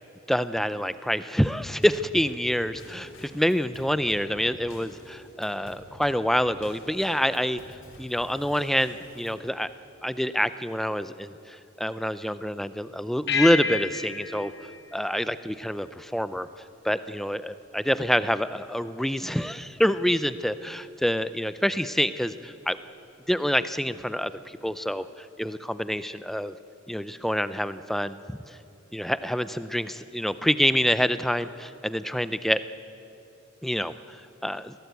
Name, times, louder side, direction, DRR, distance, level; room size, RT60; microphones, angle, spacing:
voice 1, 0.3-9.7 10.0-14.5 14.9-16.5 16.8-22.8 23.3-26.5 26.9-28.6 28.9-32.6 33.6-34.7, equal, ahead, 13 dB, 0.4 m, -27 dB
Drum kit / Snare drum / Bass drum, 1.8-9.5, left 1 dB, 70° left, 3.7 m, -49 dB
sound 1, 13.3-16.0, left 5 dB, 55° left, 1.9 m, -31 dB
22.5 x 17.5 x 8.2 m, 2.8 s
head